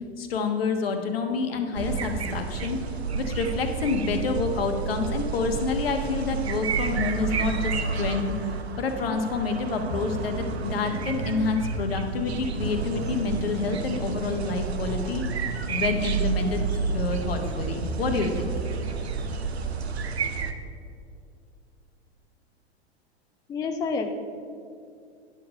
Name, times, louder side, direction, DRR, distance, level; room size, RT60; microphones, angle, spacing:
voice 1, 0.2-2.8 3.1-8.3 8.8-15.2 15.7-18.6, left 4 dB, 60° left, 5 dB, 1.3 m, -28 dB
sound 1, 1.7-20.5, right 5 dB, 70° right, 0.8 m, -30 dB
voice 2, 23.5-24.1, left 4 dB, 10° left, 5 dB, 0.4 m, -28 dB
10.5 x 6.8 x 5.5 m, 2.4 s
figure-of-eight pair, 95°, 33 cm